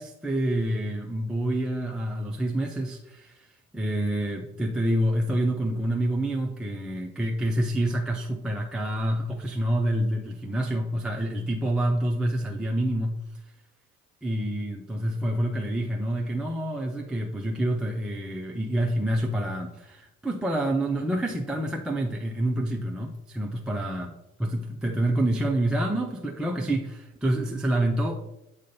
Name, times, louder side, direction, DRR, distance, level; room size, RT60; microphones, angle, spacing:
voice 1, 0.0-3.5 3.7-13.2 14.2-24.1 24.4-28.2, right 1 dB, ahead, 0 dB, 0.3 m, -27 dB
7.5 x 2.5 x 5.4 m, 0.91 s
figure-of-eight pair, 65°, 46 cm